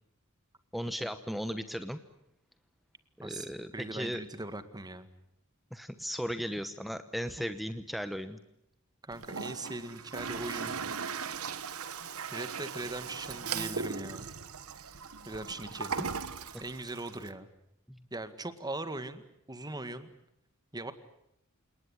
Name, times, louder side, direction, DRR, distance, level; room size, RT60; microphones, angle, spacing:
voice 1, 0.7-2.0 3.2-4.2 5.7-8.4 17.9-18.0, equal, ahead, 10 dB, 1.0 m, -36 dB
voice 2, 3.2-5.1 7.4-7.6 9.0-10.8 12.3-14.3 15.3-16.0 16.6-17.5 18.1-20.1 20.7-20.9, right 2 dB, 20° right, 11 dB, 1.8 m, -40 dB
Toilet flush, 9.1-17.3, right 5 dB, 75° right, 1.3 m, -38 dB
29.0 x 19.0 x 9.9 m, 0.80 s
head